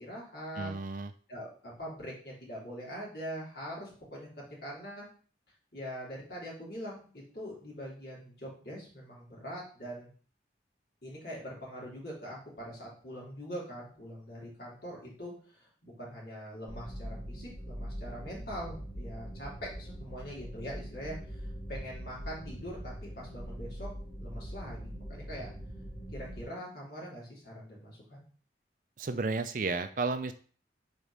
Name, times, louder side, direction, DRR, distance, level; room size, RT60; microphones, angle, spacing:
voice 1, 0.0-0.7 1.3-5.1 5.7-10.1 11.0-23.9 24.2-25.5 26.1-28.3, equal, 55° left, -5 dB, 3.2 m, -43 dB
voice 2, 0.6-1.1 29.0-30.3, right 3 dB, 45° right, 10 dB, 0.5 m, -32 dB
sound 1, 16.7-26.4, equal, 15° left, 2.2 m, -42 dB
5.0 x 4.1 x 5.4 m, 0.43 s
head